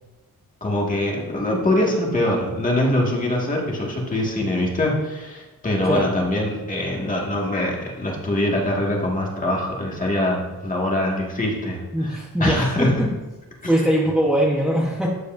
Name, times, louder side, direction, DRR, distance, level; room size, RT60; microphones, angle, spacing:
voice 1, 0.6-13.0, left 1 dB, 20° left, -2 dB, 1.9 m, -23 dB
voice 2, 11.9-13.1 13.7-15.1, equal, ahead, -4 dB, 1.0 m, -21 dB
13.0 x 8.3 x 2.6 m, 1.1 s
wide cardioid pair, 160°, 35 cm